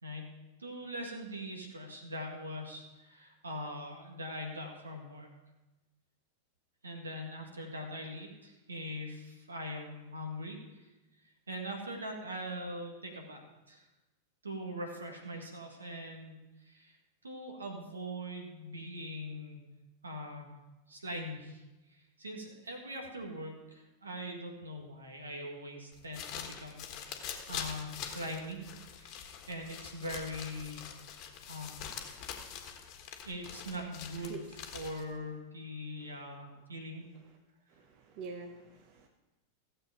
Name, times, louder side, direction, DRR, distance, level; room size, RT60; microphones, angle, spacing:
voice 1, 0.0-0.3 0.6-5.3 6.8-10.9 11.2-13.9 14.4-17.0 17.2-19.6 20.0-20.5 20.9-28.6 29.0-30.9 31.5-31.8 33.2-37.1, equal, 75° right, 2 dB, 1.9 m, -42 dB
sound 1, 25.9-35.2, left 8 dB, 40° left, 1.4 m, -44 dB
voice 2, 37.7-39.1, right 4 dB, 45° right, 4 dB, 1.0 m, -45 dB
15.5 x 7.8 x 5.1 m, 1.1 s
figure-of-eight pair, 90°, 0 cm